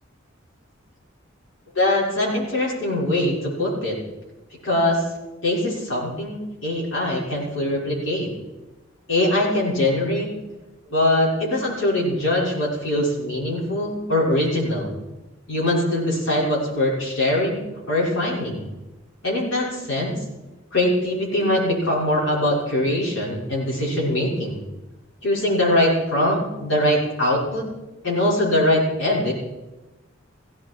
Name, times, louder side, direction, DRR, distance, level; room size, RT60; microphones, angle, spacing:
voice 1, 1.7-4.0 4.6-5.0 5.4-8.3 9.1-10.3 10.9-14.9 15.5-17.6 17.9-18.6 19.2-20.2 20.7-24.6 25.2-27.6 28.0-29.3, left 1 dB, 75° left, -5 dB, 6.0 m, -22 dB
16.5 x 16.5 x 4.7 m, 1.1 s
head